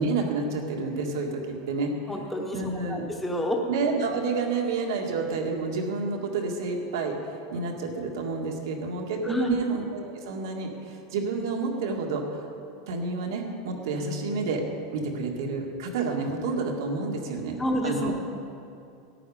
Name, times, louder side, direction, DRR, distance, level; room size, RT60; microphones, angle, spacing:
voice 1, 0.0-1.9 2.5-3.0 3.7-7.2 7.5-12.5 12.9-14.6 14.9-17.6 17.8-18.1, right 4 dB, 75° right, 1 dB, 1.9 m, -29 dB
voice 2, 2.1-2.6 2.9-3.6 9.2-9.6 17.6-18.1, left 1 dB, 5° left, 1 dB, 1.0 m, -28 dB
14.0 x 10.0 x 5.0 m, 2.6 s
supercardioid pair, 170°, 2 cm